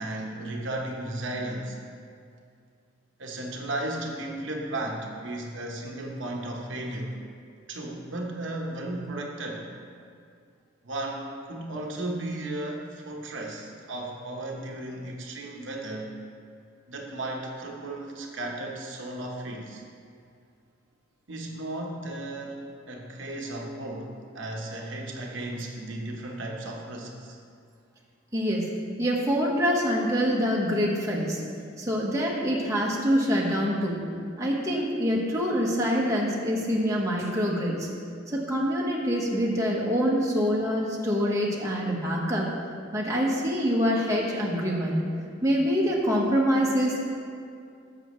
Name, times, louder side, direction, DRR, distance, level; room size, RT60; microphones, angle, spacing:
voice 1, 0.0-1.8 3.2-7.2 7.7-9.7 10.8-16.1 16.9-19.8 21.3-22.6 22.9-27.4, right 1 dB, 75° right, 0 dB, 1.0 m, -35 dB
voice 2, 28.3-28.6 29.0-31.4 31.8-34.0 34.4-37.9 38.3-42.5 42.9-45.0 45.4-47.1, equal, 15° right, -4 dB, 1.3 m, -25 dB
14.0 x 7.0 x 3.1 m, 2.4 s
head